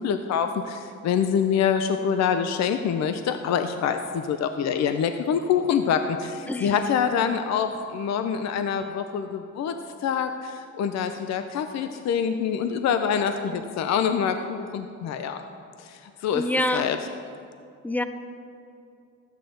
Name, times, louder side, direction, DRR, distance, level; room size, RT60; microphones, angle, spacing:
voice 1, 0.0-15.4 15.8-16.4 16.7-17.0, left 7 dB, 60° left, 8 dB, 0.6 m, -25 dB
voice 2, 6.5-6.8 13.5-13.7 16.3-16.9 17.8-18.0, left 1 dB, 5° left, 10 dB, 0.5 m, -27 dB
12.5 x 8.2 x 3.9 m, 2.5 s
cardioid pair, 90°, 30 cm